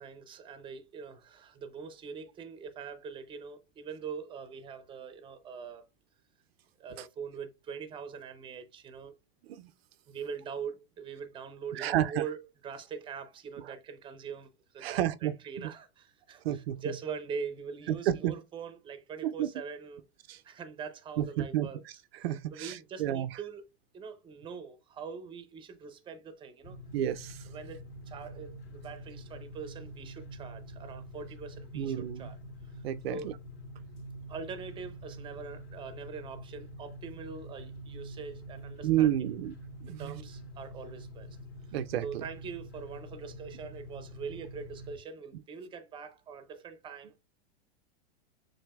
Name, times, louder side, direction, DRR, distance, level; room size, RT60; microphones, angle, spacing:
voice 1, 0.0-5.9 6.8-9.1 10.1-14.5 14.7-20.0 20.4-22.0 22.5-23.6 23.9-26.8 27.5-32.4 33.1-33.4 34.3-39.1 39.9-41.4 42.0-47.2, right 6 dB, 15° right, 0.6 m, -43 dB
voice 2, 11.7-12.2 13.6-13.7 14.8-15.7 16.4-16.8 17.9-18.4 19.2-19.5 20.3-20.4 21.2-21.7 22.1-23.4 26.9-27.4 31.7-32.3 32.8-33.3 38.8-39.5 39.8-40.2 41.7-42.2, right 12 dB, 75° right, 0.5 m, -31 dB
sound 1, 26.6-45.0, equal, 50° left, 2.6 m, -46 dB
7.1 x 2.6 x 2.3 m
supercardioid pair, 135°, 31 cm